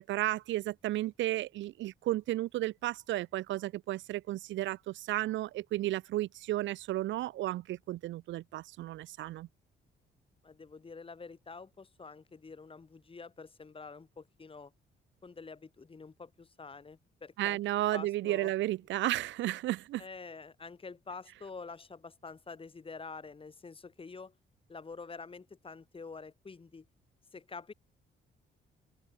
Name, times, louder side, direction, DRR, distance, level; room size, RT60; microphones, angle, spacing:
voice 1, 0.0-9.5 17.4-20.0, right 15 dB, 70° right, 0.4 m, -33 dB
voice 2, 10.4-14.7 15.2-17.6 17.9-18.5 20.0-24.3 24.7-26.9 27.3-27.7, left 4 dB, 25° left, 1.8 m, -47 dB
open air
cardioid pair, 90°, 20 cm